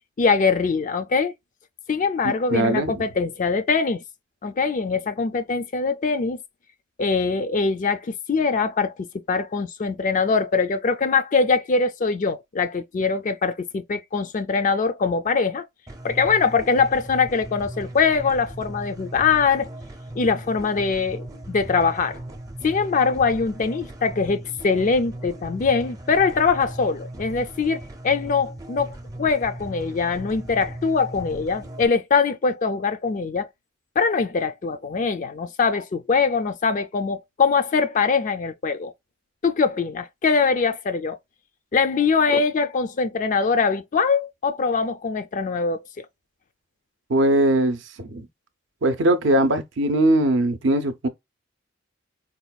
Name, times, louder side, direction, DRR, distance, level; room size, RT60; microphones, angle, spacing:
voice 1, 0.2-1.3 1.9-4.0 4.4-6.4 7.0-15.6 16.0-19.7 20.2-22.2 22.6-33.5 34.0-38.9 39.4-41.2 41.7-45.8, left 5 dB, 40° left, 0.3 m, -22 dB
voice 2, 2.2-3.0 47.1-48.3 48.8-51.1, right 1 dB, 60° right, 0.5 m, -21 dB
sound 1, 15.9-31.9, right 1 dB, 15° right, 0.5 m, -38 dB
4.1 x 2.2 x 2.3 m
head